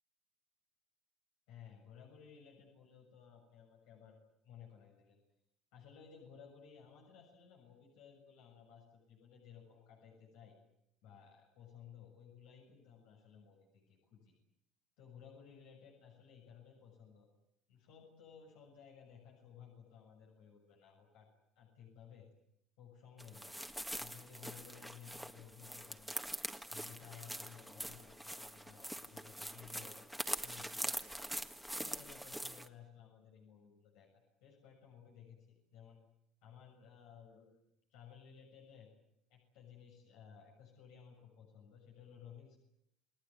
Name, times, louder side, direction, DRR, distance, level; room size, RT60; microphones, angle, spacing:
voice 1, 1.5-5.2 5.7-10.6 11.0-14.3 15.0-17.3 17.7-21.3 21.5-22.3 22.8-23.6 24.0-26.3 26.7-30.0 30.4-31.1 31.7-36.0 36.4-37.6 37.9-38.9 39.3-42.6, left 8 dB, 85° left, 0 dB, 6.8 m, -57 dB
sound 1, 23.2-32.7, right 1 dB, ahead, 1.7 m, -44 dB
29.0 x 18.5 x 9.4 m, 0.78 s
cardioid pair, 110°, 0 cm